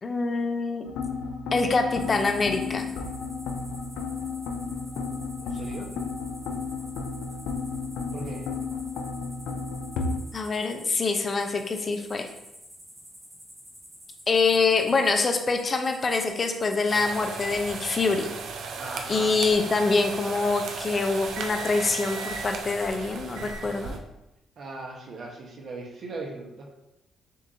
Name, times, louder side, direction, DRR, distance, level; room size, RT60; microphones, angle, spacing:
voice 1, 0.0-0.9 1.5-2.9 10.3-12.3 14.3-18.3 19.1-23.9, left 4 dB, 40° left, 5 dB, 0.6 m, -25 dB
sound 1, 0.8-10.2, left 4 dB, 85° left, 0.5 m, -33 dB
sound 2, 1.9-18.3, equal, 20° right, 1.4 m, -49 dB
voice 2, 5.4-5.9 8.1-8.4 18.8-19.3 24.6-26.7, right 2 dB, 60° right, -1 dB, 1.0 m, -38 dB
sound 3, 16.9-24.0, right 4 dB, 75° right, 0.5 m, -36 dB
6.6 x 2.7 x 2.6 m, 0.90 s
cardioid pair, 90°, 0 cm